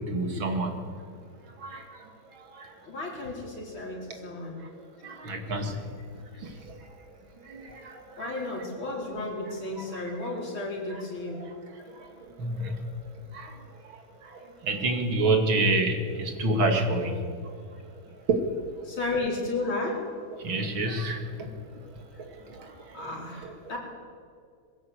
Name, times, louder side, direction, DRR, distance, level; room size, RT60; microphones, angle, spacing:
voice 1, 0.1-0.7 1.6-1.8 5.0-5.8 7.5-7.6 8.4-8.5 9.9-10.0 12.4-12.7 13.3-13.5 14.6-17.1 18.3-18.4 20.4-21.2 23.4-23.5, right 2 dB, 80° right, 4 dB, 3.1 m, -26 dB
voice 2, 2.8-4.6 8.2-11.4 18.8-19.9 22.9-23.8, left 2 dB, 85° left, -2 dB, 5.1 m, -33 dB
22.0 x 15.0 x 8.1 m, 2.2 s
omnidirectional pair, 2.2 m